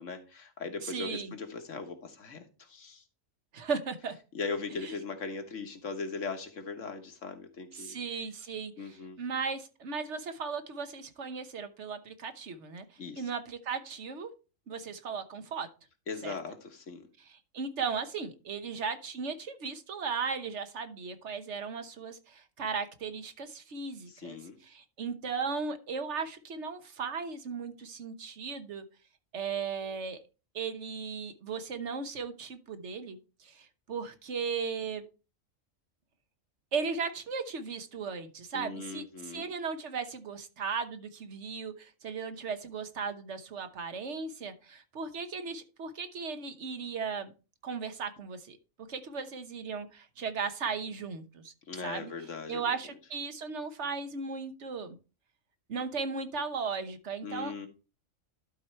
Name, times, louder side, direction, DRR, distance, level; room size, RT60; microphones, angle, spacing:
voice 1, 0.0-3.0 4.3-8.0 8.8-9.2 13.0-13.2 16.1-17.1 24.1-24.6 38.5-39.5 51.7-52.7 57.2-57.7, left 4 dB, 70° left, 1.7 m, -39 dB
voice 2, 0.8-1.3 3.5-4.1 4.8-4.9 7.7-12.9 13.2-14.3 14.7-15.7 16.2-16.4 17.5-24.4 24.7-28.8 29.3-30.2 30.5-35.0 36.7-47.3 47.6-48.6 48.9-51.5 51.8-52.1 52.5-55.0 55.7-57.7, right 5 dB, 65° right, 1.2 m, -36 dB
12.0 x 4.4 x 4.4 m
omnidirectional pair, 1.3 m